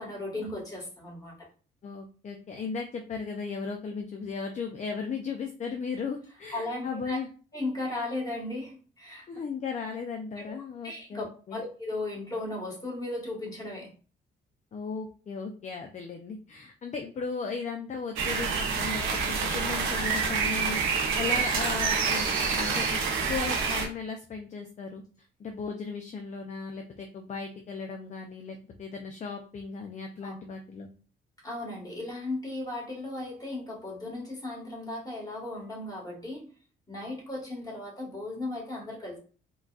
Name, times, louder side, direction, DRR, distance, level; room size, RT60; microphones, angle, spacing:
voice 1, 0.0-1.5 6.5-7.2 7.5-9.3 10.4-10.5 10.8-11.2 11.5-13.9 30.2-30.3 31.4-36.5 36.9-39.2, left 2 dB, 20° left, -2 dB, 1.6 m, -36 dB
voice 2, 1.8-7.3 9.3-11.6 14.7-23.0 23.3-25.0 25.4-30.9, left 5 dB, 35° left, 4 dB, 0.5 m, -36 dB
sound 1, 18.2-23.9, right 5 dB, 85° right, 0.8 m, -27 dB
3.8 x 2.2 x 2.4 m, 0.38 s
cardioid pair, 90°, 20 cm